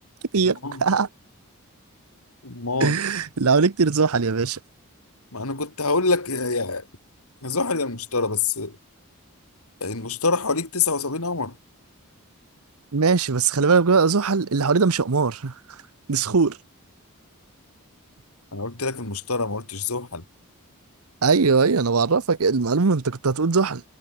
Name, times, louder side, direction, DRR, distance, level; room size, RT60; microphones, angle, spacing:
voice 1, 0.3-1.1 2.8-4.6 12.9-15.5 16.1-16.6 21.2-23.8, right 4 dB, 80° right, 0.8 m, -20 dB
voice 2, 2.4-3.0 5.3-6.9 7.4-8.8 9.8-11.6 18.5-20.2, left 4 dB, 80° left, 3.7 m, -26 dB
head